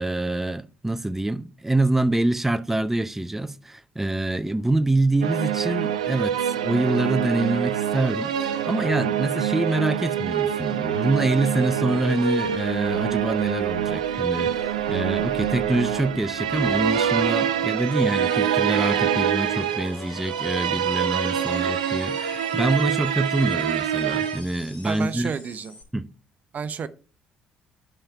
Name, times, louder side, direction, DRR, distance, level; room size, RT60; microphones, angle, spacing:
voice 1, 0.0-25.3 25.9-26.1, right 2 dB, 10° right, 0.6 m, -25 dB
sound 1, 5.2-24.4, right 9 dB, 85° right, 0.5 m, -25 dB
sound 2, 12.5-25.8, left 2 dB, 45° left, 3.8 m, -44 dB
voice 2, 24.8-25.7 26.5-26.9, right 6 dB, 45° right, 0.7 m, -31 dB
9.8 x 5.6 x 3.3 m
hypercardioid pair, 50°, 4 cm